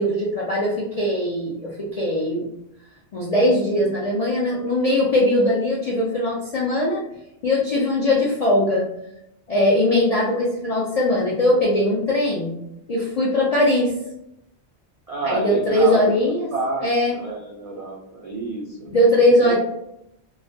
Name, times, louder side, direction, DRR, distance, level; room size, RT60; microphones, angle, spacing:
voice 1, 0.0-2.5 3.1-7.0 7.4-8.8 9.5-12.6 12.9-13.9 15.2-16.5 16.8-17.1 18.9-19.6, left 1 dB, 60° left, -6 dB, 0.4 m, -20 dB
voice 2, 15.1-16.2 16.5-16.9 17.1-18.9 19.3-19.6, right 3 dB, 70° right, -4 dB, 0.3 m, -28 dB
2.2 x 2.1 x 2.6 m, 0.81 s
omnidirectional pair, 1.1 m